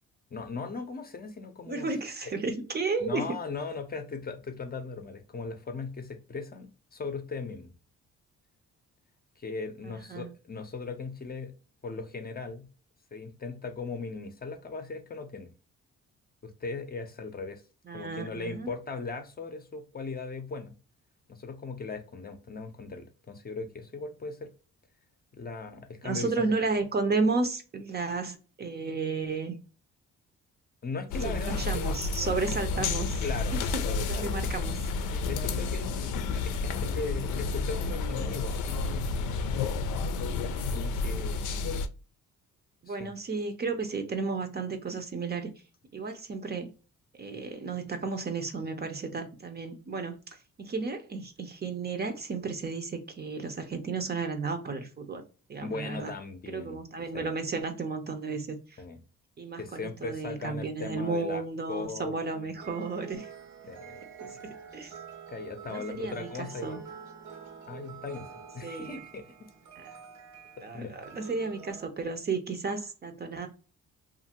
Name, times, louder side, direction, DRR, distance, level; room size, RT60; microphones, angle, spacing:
voice 1, 0.3-1.9 2.2-2.3 3.0-7.7 9.4-11.5 11.8-12.7 13.1-15.5 16.4-17.6 17.9-20.7 21.3-24.5 25.3-26.5 30.8-31.9 33.2-34.5 35.1-39.0 40.7-41.7 42.9-43.1 55.6-56.8 57.1-57.3 58.8-59.0 59.6-61.4 61.7-62.4 63.7-64.0 65.3-66.9 67.7-69.5 69.8-70.0 70.7-70.9, left 4 dB, 30° left, 0.6 m, -38 dB
voice 2, 1.7-3.3 9.9-10.3 17.9-18.7 26.0-29.6 31.2-33.2 33.5-34.8 42.8-45.5 45.9-46.7 47.2-55.2 55.5-56.1 56.5-58.8 59.4-63.3 64.2-64.9 65.7-66.8 68.6-69.0 69.8-69.9 70.6-73.5, right 4 dB, 35° right, 0.6 m, -33 dB
sound 1, 31.1-41.9, left 4 dB, 80° left, 0.5 m, -31 dB
sound 2, 62.5-71.9, right 7 dB, 65° right, 1.0 m, -47 dB
2.7 x 2.5 x 2.8 m
cardioid pair, 90°, 30 cm